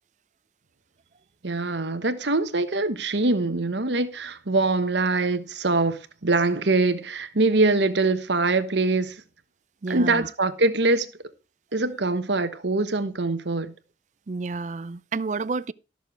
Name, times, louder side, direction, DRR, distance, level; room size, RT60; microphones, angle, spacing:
voice 1, 1.4-9.2 9.9-11.1 11.7-13.7, right 3 dB, 80° right, 1.3 m, -23 dB
voice 2, 9.8-10.3 14.3-15.7, right 4 dB, 40° right, 0.4 m, -30 dB
13.5 x 6.8 x 4.5 m
head